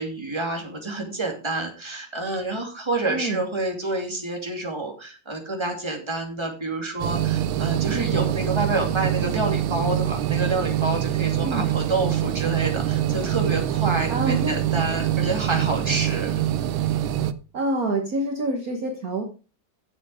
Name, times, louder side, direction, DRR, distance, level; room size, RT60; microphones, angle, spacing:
voice 1, 0.0-16.4, right 2 dB, 15° right, 1 dB, 2.5 m, -28 dB
voice 2, 3.1-3.4 11.4-11.6 14.1-14.6 17.5-19.2, right 2 dB, 50° right, 3 dB, 1.7 m, -26 dB
sound 1, 7.0-17.3, right 12 dB, 85° right, 1.5 m, -24 dB
10.5 x 7.4 x 4.9 m, 0.35 s
omnidirectional pair, 2.2 m